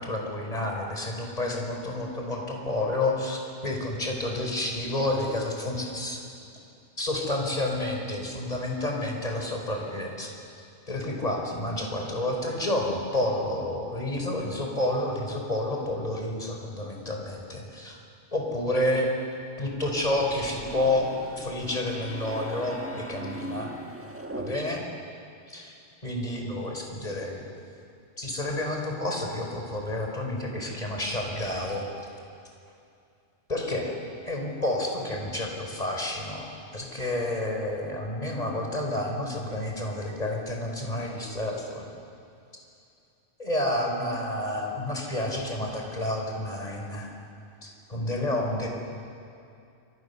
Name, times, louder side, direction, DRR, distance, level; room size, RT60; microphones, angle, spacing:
voice 1, 0.0-6.2 7.0-10.3 10.9-18.0 18.3-19.1 19.6-21.1 21.4-23.7 24.4-24.8 25.5-25.7 26.0-27.4 28.2-31.8 33.5-33.9 34.2-36.5 36.7-41.9 43.4-47.1 47.6-48.7, left 1 dB, 40° left, 0 dB, 4.9 m, -30 dB
sound 1, 19.8-25.1, right 1 dB, 15° right, 1.2 m, -40 dB
28.5 x 27.5 x 6.9 m, 2.5 s
omnidirectional pair, 1.1 m